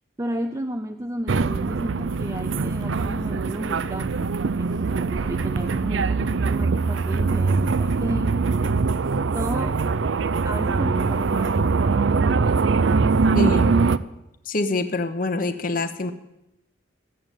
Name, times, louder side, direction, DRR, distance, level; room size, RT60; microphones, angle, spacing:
voice 1, 0.2-4.3 4.6-8.6 9.3-9.8 10.4-12.1, right 1 dB, 15° right, 5 dB, 0.6 m, -32 dB
sound 1, 1.3-14.0, right 4 dB, 65° right, 0.5 m, -22 dB
voice 2, 13.3-13.8 14.5-16.1, left 2 dB, 45° left, 8 dB, 1.0 m, -25 dB
14.5 x 7.9 x 9.0 m, 0.90 s
head